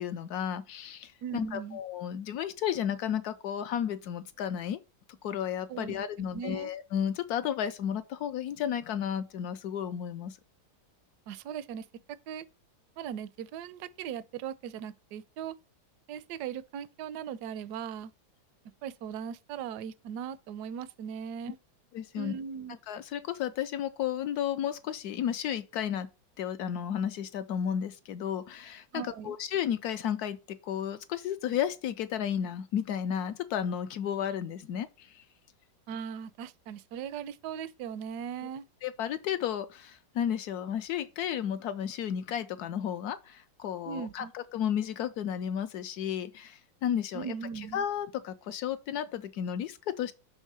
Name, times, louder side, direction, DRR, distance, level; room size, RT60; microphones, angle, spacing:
voice 1, 0.0-4.8 5.2-10.4 21.5-21.6 21.9-22.3 22.9-26.1 26.4-35.2 38.8-47.3 47.7-50.1, left 9 dB, 70° left, 0.9 m, -33 dB
voice 2, 1.2-1.8 5.7-6.7 11.3-11.8 12.3-12.5 13.0-15.5 16.1-18.1 18.8-21.6 22.2-22.8 28.9-29.4 35.9-38.6 43.9-44.3 47.1-47.8, right 8 dB, 70° right, 1.0 m, -39 dB
6.4 x 3.5 x 6.0 m
omnidirectional pair, 2.0 m